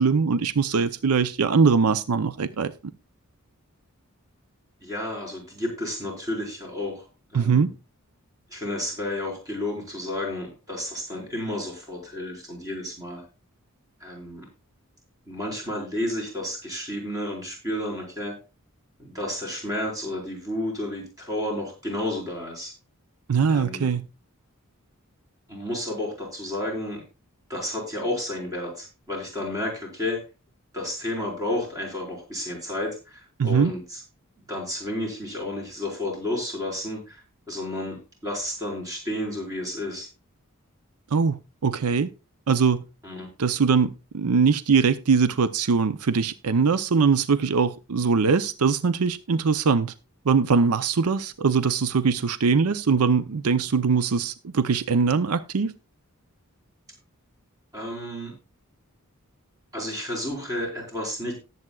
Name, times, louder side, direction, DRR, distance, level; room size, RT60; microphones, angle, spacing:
voice 1, 0.0-2.7 7.3-7.7 23.3-24.1 33.4-33.7 41.1-42.1 42.5-42.8 43.4-49.9 50.2-55.7, right 5 dB, 90° right, 0.6 m, -22 dB
voice 2, 4.8-7.1 7.3-7.7 8.5-13.2 14.0-14.5 15.3-18.4 19.0-22.7 23.5-23.9 25.5-27.0 27.5-30.2 30.7-34.0 34.5-40.1 43.0-43.3 57.7-58.3 59.7-61.3, left 1 dB, 15° right, 4.5 m, -31 dB
18.5 x 7.8 x 2.3 m
head